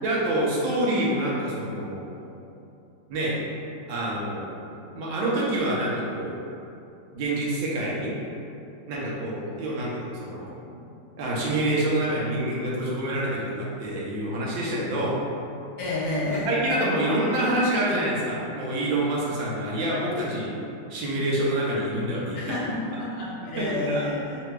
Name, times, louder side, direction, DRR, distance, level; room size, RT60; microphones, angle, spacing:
voice 1, 0.0-2.4 3.1-3.4 3.9-6.4 7.1-8.1 8.9-10.5 11.2-15.2 16.3-20.5 20.9-22.4 23.6-24.1, right 1 dB, 80° right, -5 dB, 1.5 m, -27 dB
voice 2, 15.8-16.5 22.3-24.4, left 2 dB, 65° left, -7 dB, 1.4 m, -29 dB
3.9 x 2.2 x 4.5 m, 2.7 s
omnidirectional pair, 2.1 m